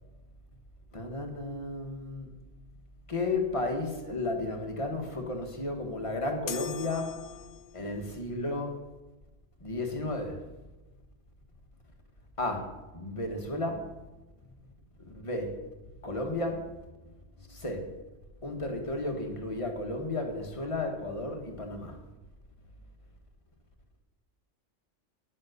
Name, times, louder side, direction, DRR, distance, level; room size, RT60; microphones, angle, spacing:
voice 1, 0.9-2.3 3.1-7.4 7.7-8.8 9.6-10.5 12.4-13.9 14.4-14.5 15.0-15.6 16.0-16.8 17.4-17.9 18.4-22.0, left 2 dB, 25° left, 3 dB, 1.5 m, -33 dB
sound 1, 6.5-8.0, left 8 dB, 50° left, 0.7 m, -40 dB
10.0 x 7.3 x 6.6 m, 1.1 s
omnidirectional pair, 1.3 m